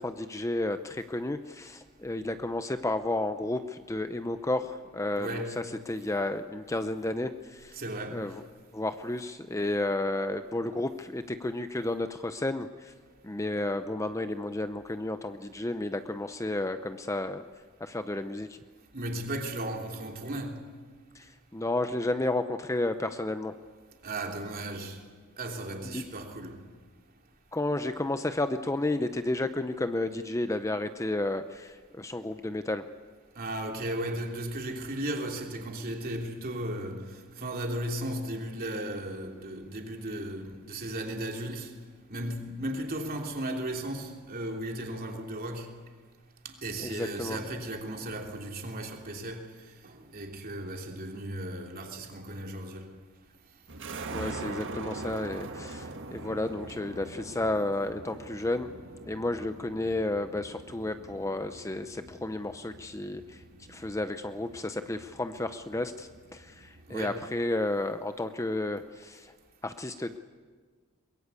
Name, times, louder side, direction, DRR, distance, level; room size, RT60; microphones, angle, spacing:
voice 1, 0.0-7.8 8.1-8.4 8.7-12.9 13.2-17.4 17.8-18.6 21.1-23.5 25.8-26.0 27.5-32.8 46.8-47.4 54.1-58.7 59.1-63.4 63.7-69.3 69.6-70.2, left 2 dB, 15° left, 0.7 m, -32 dB
voice 2, 5.2-5.7 7.7-8.4 18.9-20.7 24.0-25.0 25.4-26.6 33.3-41.8 42.1-45.8 46.4-53.0 55.3-55.5 66.9-67.2, right 1 dB, 45° right, 3.1 m, -36 dB
sound 1, 53.7-67.3, right 2 dB, 60° right, 1.7 m, -43 dB
23.0 x 22.0 x 8.4 m
head